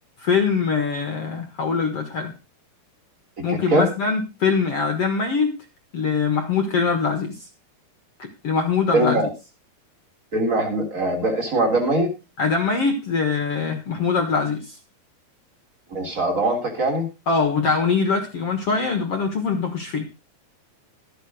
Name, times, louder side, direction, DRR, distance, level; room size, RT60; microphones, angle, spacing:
voice 1, 0.2-2.3 3.4-5.5 5.9-7.4 8.2-9.2 12.4-14.8 17.3-20.1, left 5 dB, 55° left, 6 dB, 1.7 m, -23 dB
voice 2, 3.4-3.9 8.9-9.3 10.3-12.1 15.9-17.1, right 1 dB, 20° right, 3 dB, 3.2 m, -22 dB
13.5 x 9.1 x 4.9 m, 0.29 s
omnidirectional pair, 4.7 m